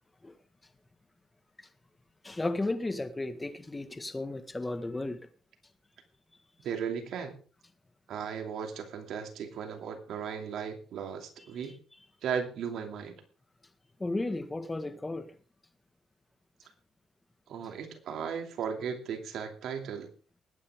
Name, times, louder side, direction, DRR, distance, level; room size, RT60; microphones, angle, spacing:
voice 1, 2.2-5.3 14.0-15.3, left 2 dB, 20° left, 1.7 m, -34 dB
voice 2, 6.6-7.4 8.1-11.8 12.2-13.2 17.5-20.1, right 7 dB, 75° right, 2.8 m, -36 dB
20.0 x 9.6 x 3.7 m
cardioid pair, 90°, 0 cm